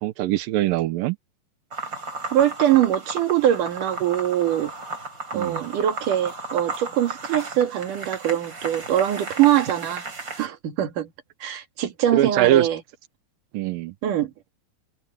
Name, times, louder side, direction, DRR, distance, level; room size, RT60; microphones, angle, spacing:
voice 1, 0.0-1.2 5.3-5.7 12.1-12.7 13.5-13.9, right 14 dB, 75° right, 2.2 m, -22 dB
sound 1, 1.7-10.5, right 3 dB, 25° right, 4.3 m, -34 dB
voice 2, 2.3-4.7 5.3-10.0 10.4-11.1 11.4-12.8 14.0-14.3, right 11 dB, 55° right, 3.2 m, -22 dB
omnidirectional pair, 4.9 m